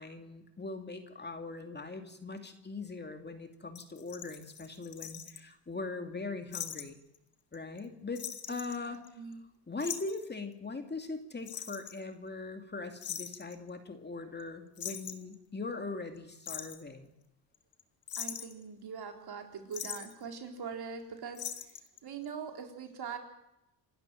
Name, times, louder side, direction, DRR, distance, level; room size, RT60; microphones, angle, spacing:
voice 1, 0.0-7.0 7.5-9.0 9.7-17.1, left 3 dB, 20° left, 6 dB, 2.6 m, -41 dB
sound 1, 3.7-5.4 6.5-6.8 7.1-7.2 7.5-7.8 8.1-9.3 9.8-10.2 11.5-12.0 13.0-13.5 14.4-14.5 14.8-15.3 16.2-16.8 17.5-17.8 18.1-18.6 19.7-20.1 21.3-22.0 22.2-22.3, left 9 dB, 50° left, 2.1 m, -41 dB
voice 2, 8.8-9.4 18.2-21.7 22.0-23.2, right 6 dB, 55° right, 4 dB, 3.9 m, -42 dB
27.0 x 12.0 x 9.1 m, 0.88 s
cardioid pair, 95°, 46 cm